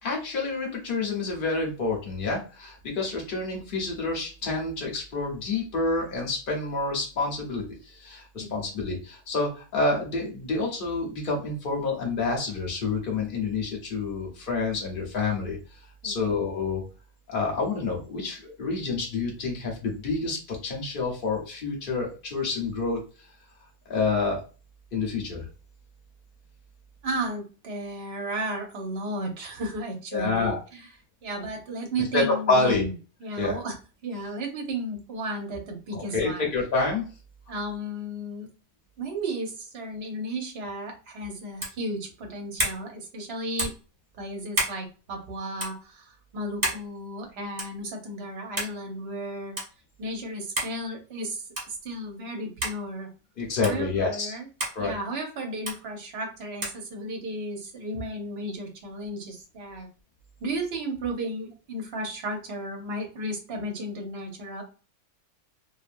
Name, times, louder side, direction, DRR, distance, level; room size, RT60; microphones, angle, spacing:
voice 1, 0.0-15.6 16.0-16.8 17.3-23.0 23.9-24.4 24.9-25.4 30.1-30.6 32.1-32.8 33.4-33.6 35.9-37.1 53.4-54.4 54.7-54.9, left 3 dB, 40° left, -1 dB, 1.0 m, -28 dB
voice 2, 8.4-8.7 16.0-16.3 27.0-30.9 31.2-32.9 33.2-33.8 34.0-36.5 37.5-38.5 39.0-43.7 44.2-49.5 50.0-53.1 53.6-54.5 54.8-59.9 60.4-64.6, right 1 dB, 50° right, 3 dB, 0.9 m, -34 dB
sound 1, 41.6-41.8 42.6-42.8 43.6-43.8 44.5-44.8 45.6-45.7 46.6-46.8 47.6-47.8 48.6-48.8 49.6-49.7 50.6-50.8 51.5-51.8 52.6-52.8 53.6-53.8 54.6-54.8 55.7-55.8 56.6-56.8, right 1 dB, 30° right, 1.2 m, -29 dB
2.7 x 2.7 x 2.5 m, 0.35 s
omnidirectional pair, 1.5 m